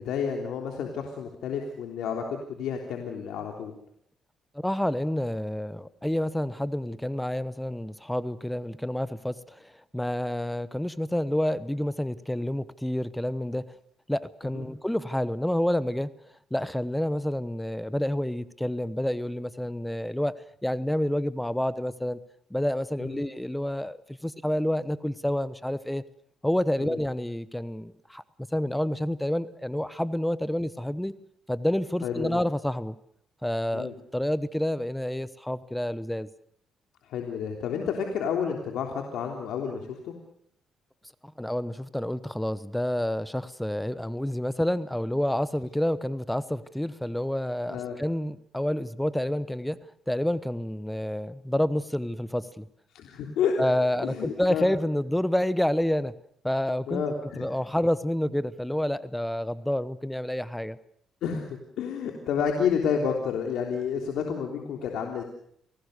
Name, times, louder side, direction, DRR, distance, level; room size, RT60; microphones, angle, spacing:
voice 1, 0.0-3.7 14.5-14.6 23.0-23.2 26.8-27.0 32.0-32.4 33.7-33.9 37.0-40.1 47.7-48.0 52.9-53.5 54.0-54.7 56.9-57.5 61.2-65.2, left 7 dB, 80° left, 2 dB, 3.4 m, -30 dB
voice 2, 4.5-13.6 14.1-16.1 16.5-20.3 20.6-22.2 22.5-26.0 26.4-28.2 28.5-31.1 31.5-33.0 33.4-36.3 41.4-49.8 50.1-52.7 53.6-56.1 56.4-57.0 57.4-60.8, left 1 dB, 5° left, 15 dB, 1.0 m, -28 dB
28.5 x 18.5 x 6.7 m, 0.68 s
cardioid pair, 90°, 0 cm